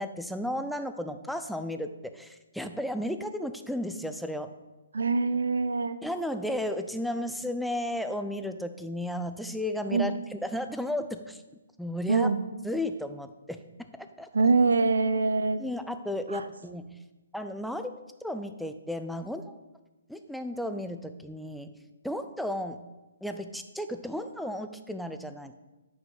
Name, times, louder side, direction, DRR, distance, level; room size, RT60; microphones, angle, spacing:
voice 1, 0.0-4.5 6.0-11.4 11.8-12.3 12.6-14.3 15.6-16.9 17.3-17.9 18.2-19.4 20.1-21.7 22.0-22.8 23.2-25.5, left 1 dB, ahead, 8 dB, 0.4 m, -34 dB
voice 2, 4.9-6.0 9.9-10.1 12.1-12.4 14.3-15.6 16.3-16.5, right 4 dB, 80° right, 12 dB, 0.6 m, -24 dB
8.1 x 5.0 x 3.8 m, 1.1 s
hypercardioid pair, 145°, 0 cm